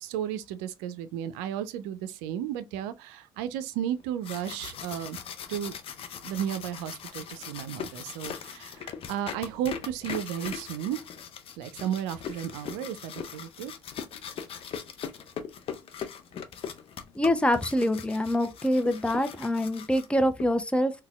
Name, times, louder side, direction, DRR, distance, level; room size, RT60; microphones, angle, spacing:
voice 1, 0.0-5.2 5.5-5.7 6.2-11.0 11.6-13.7, right 10 dB, 80° right, 0.4 m, -34 dB
sound 1, 4.0-20.4, left 7 dB, 50° left, 0.6 m, -40 dB
voice 2, 17.2-20.9, left 1 dB, 10° left, 0.6 m, -25 dB
4.0 x 2.3 x 2.3 m
hypercardioid pair, 60°, 12 cm